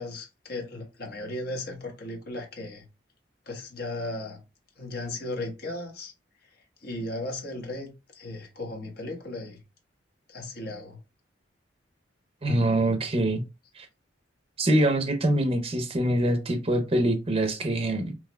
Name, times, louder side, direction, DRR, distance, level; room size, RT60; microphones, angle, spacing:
voice 1, 0.0-2.8 3.5-4.4 4.8-6.1 6.6-9.6 10.3-11.0, left 2 dB, 55° left, 1.2 m, -36 dB
voice 2, 12.4-13.4 13.8-13.9 14.6-18.2, right 1 dB, 30° right, 0.7 m, -24 dB
5.8 x 3.0 x 2.2 m
head